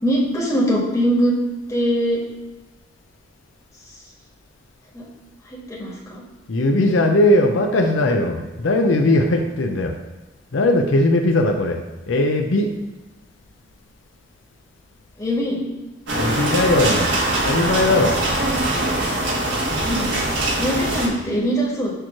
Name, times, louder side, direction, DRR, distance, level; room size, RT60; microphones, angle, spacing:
voice 1, 0.0-1.3 1.7-2.2 4.9-5.0 5.7-6.2 15.2-15.6 19.8-20.1 20.6-21.9, equal, 15° left, -5 dB, 1.5 m, -21 dB
voice 2, 6.5-9.9 10.5-12.7 16.1-18.2, left 1 dB, 75° left, 3 dB, 0.6 m, -19 dB
sound 1, 16.1-21.1, right 1 dB, 65° right, 1.5 m, -22 dB
6.6 x 3.1 x 5.9 m, 1.1 s
head